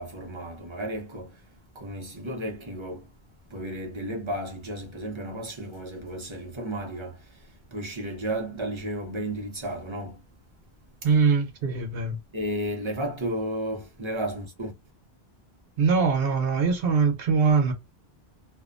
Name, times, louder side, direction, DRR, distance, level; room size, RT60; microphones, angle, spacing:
voice 1, 0.0-1.4 1.7-3.1 3.5-7.4 7.7-10.2 12.3-14.7, right 1 dB, 35° right, 0.5 m, -33 dB
voice 2, 11.0-12.2 15.8-17.7, right 5 dB, 65° right, 0.8 m, -22 dB
2.5 x 2.0 x 2.4 m
omnidirectional pair, 1.1 m